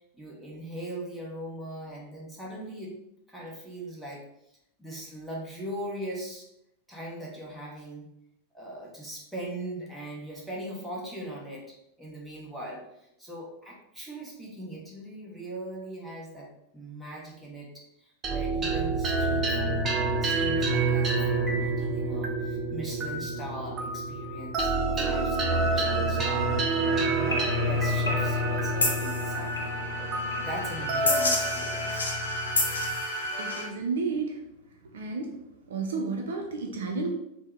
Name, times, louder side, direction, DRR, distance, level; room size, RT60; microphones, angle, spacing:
voice 1, 0.2-3.0 3.3-4.2 4.8-6.5 6.9-8.1 8.5-12.8 13.2-17.7 18.0-19.9 20.2-32.1, right 1 dB, ahead, -5 dB, 1.0 m, -40 dB
sound 1, 18.2-32.9, right 2 dB, 25° right, 0.6 m, -28 dB
sound 2, 27.2-33.6, left 1 dB, 70° left, 0.6 m, -30 dB
voice 2, 33.4-34.4 34.8-35.4 35.7-37.1, right 4 dB, 60° right, 3 dB, 0.4 m, -31 dB
3.4 x 2.1 x 3.4 m, 0.81 s
figure-of-eight pair, 90°, 0 cm